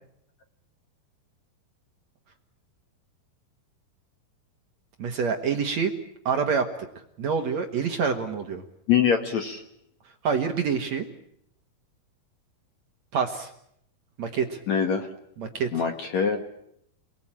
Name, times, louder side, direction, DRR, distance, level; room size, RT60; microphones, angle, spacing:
voice 1, 5.0-5.9 6.3-6.7 7.2-8.6 10.2-11.1 13.1-13.5 14.2-14.6 15.4-15.8, right 6 dB, 55° right, 5 dB, 2.2 m, -26 dB
voice 2, 8.9-9.6 14.7-15.1 15.7-16.4, left 7 dB, 55° left, 6 dB, 2.3 m, -23 dB
28.5 x 20.0 x 8.9 m, 0.74 s
omnidirectional pair, 4.7 m